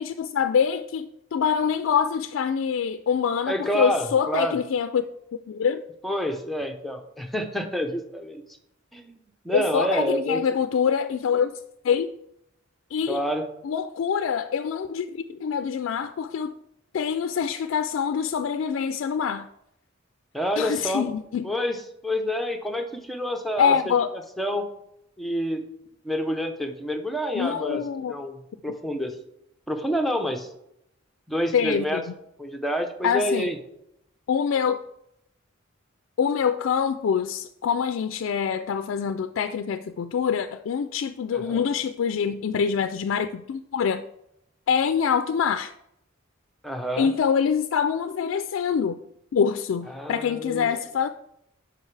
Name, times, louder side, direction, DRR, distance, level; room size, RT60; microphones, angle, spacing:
voice 1, 0.0-5.1 5.5-5.8 9.5-11.5 11.8-12.1 12.9-13.2 13.6-16.5 16.9-19.5 20.6-21.5 23.6-24.1 27.3-28.2 31.5-32.0 33.0-33.5 34.3-34.8 36.2-44.0 44.7-45.7 47.0-49.0 49.3-51.1, left 7 dB, 80° left, 10 dB, 0.3 m, -25 dB
voice 2, 3.5-4.6 6.0-8.4 8.9-9.2 9.4-10.4 13.1-13.5 20.3-21.1 21.4-23.9 24.4-24.7 25.2-25.6 26.0-29.1 29.7-30.5 31.3-32.0 32.4-33.6 41.3-41.7 46.6-47.1 49.9-50.7, equal, ahead, 4 dB, 0.7 m, -28 dB
9.1 x 5.9 x 3.3 m, 0.79 s
head